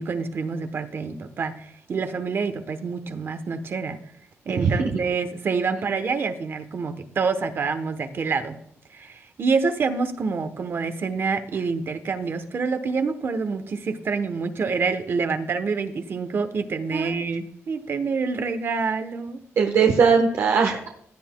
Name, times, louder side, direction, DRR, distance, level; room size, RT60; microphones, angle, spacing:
voice 1, 0.0-4.0 4.4-8.6 8.9-19.4, right 4 dB, 50° right, 9 dB, 1.0 m, -27 dB
voice 2, 4.6-4.9 16.9-17.1 19.6-20.9, right 5 dB, 80° right, 2 dB, 1.1 m, -20 dB
16.0 x 9.5 x 2.3 m, 0.71 s
wide cardioid pair, 130°, 5 cm